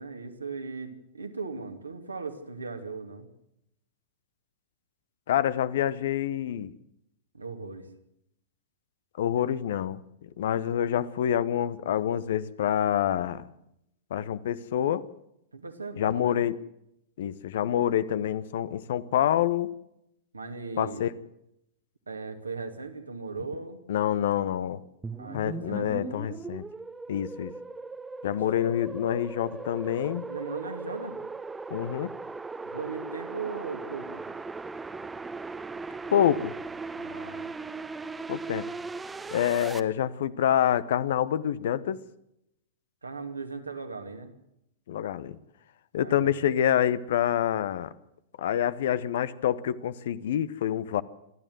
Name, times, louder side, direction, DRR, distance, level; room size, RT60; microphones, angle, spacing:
voice 1, 0.0-3.3 7.3-7.9 15.5-16.4 20.3-21.0 22.1-23.8 25.2-26.4 28.3-28.4 30.3-31.2 32.6-34.2 37.0-37.5 43.0-44.3 46.0-46.3, right 4 dB, 80° right, 5 dB, 2.5 m, -38 dB
voice 2, 5.3-6.7 9.2-10.0 10.4-13.5 14.1-15.1 16.0-16.6 17.2-19.8 20.8-21.1 23.9-24.8 25.3-26.6 27.1-27.5 28.2-30.3 31.7-32.1 36.1-36.5 38.3-38.7 39.3-42.0 44.9-45.4 45.9-47.9 48.4-51.0, left 10 dB, 55° left, 17 dB, 1.0 m, -27 dB
sound 1, 25.0-39.8, right 3 dB, 10° right, 1.1 m, -38 dB
27.5 x 12.5 x 7.9 m, 0.81 s
figure-of-eight pair, 100°, 0 cm